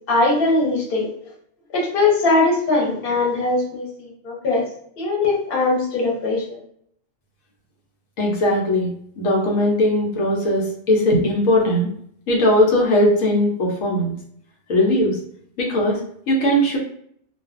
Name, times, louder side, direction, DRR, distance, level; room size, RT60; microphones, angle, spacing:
voice 1, 0.1-1.1 1.7-4.7 5.0-6.4, left 3 dB, 50° left, -3 dB, 1.0 m, -20 dB
voice 2, 8.2-8.9 9.2-11.9 12.3-14.1 14.7-15.2 15.6-16.0 16.3-16.8, left 1 dB, 90° left, -1 dB, 1.1 m, -19 dB
2.5 x 2.3 x 2.4 m, 0.66 s
omnidirectional pair, 1.3 m